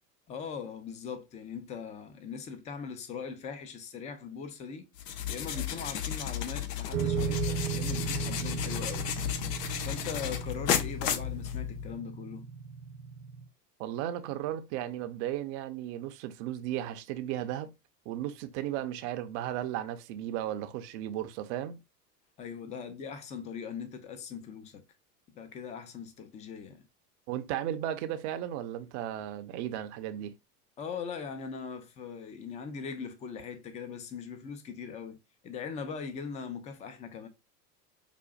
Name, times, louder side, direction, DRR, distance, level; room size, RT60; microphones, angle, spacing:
voice 1, 0.3-4.9 5.3-9.1 9.9-12.5 22.4-24.8 25.3-26.9 30.8-35.2 35.4-37.3, left 6 dB, 15° left, 0.4 m, -40 dB
sound 1, 5.0-12.0, left 10 dB, 75° left, 0.7 m, -33 dB
sound 2, 6.9-13.5, right 8 dB, 80° right, 0.9 m, -36 dB
voice 2, 13.8-17.7 18.1-21.8 27.3-30.3, right 12 dB, 45° right, 0.6 m, -35 dB
4.9 x 2.4 x 2.4 m
hypercardioid pair, 95°, 48 cm